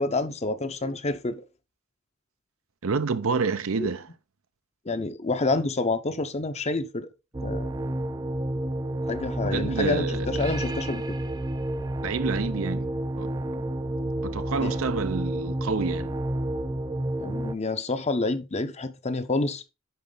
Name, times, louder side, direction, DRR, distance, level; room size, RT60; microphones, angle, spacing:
voice 1, 0.0-1.4 3.8-3.9 4.9-7.1 7.4-7.7 9.1-11.2 14.6-14.8 17.2-19.6, left 2 dB, 30° left, 0.7 m, -28 dB
voice 2, 2.8-4.1 9.4-10.5 12.0-12.9 13.2-13.3 14.2-16.1, right 4 dB, 65° right, 0.6 m, -28 dB
sound 1, 7.3-17.5, right 1 dB, 20° right, 0.4 m, -30 dB
10.5 x 4.1 x 3.9 m
head